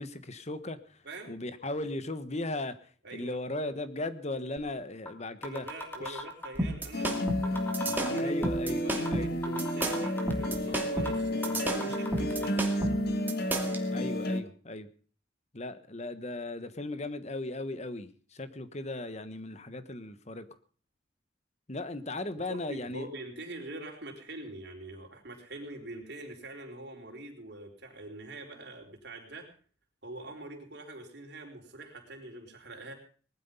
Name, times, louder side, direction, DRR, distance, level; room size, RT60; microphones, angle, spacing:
voice 1, 0.0-1.0 1.3-2.8 3.1-5.7 6.0-6.2 8.2-8.8 9.1-9.3 13.9-14.9 15.5-20.5 21.7-23.1, left 2 dB, 35° left, 13 dB, 1.3 m, -37 dB
voice 2, 3.0-3.4 5.4-8.4 8.7-12.8 22.5-29.5 30.0-32.9, right 2 dB, 60° right, 2 dB, 4.6 m, -44 dB
sound 1, 4.6-4.7 5.1-5.2 5.4-6.6 7.1-7.2 7.4-8.6 9.1-9.2 9.4-10.6 11.1-11.2 11.4-12.5, left 1 dB, 10° left, 2.7 m, -38 dB
sound 2, 6.6-13.8, right 1 dB, 10° right, 2.5 m, -32 dB
sound 3, 6.9-14.4, equal, 55° left, 1.7 m, -31 dB
20.0 x 12.0 x 5.6 m, 0.42 s
head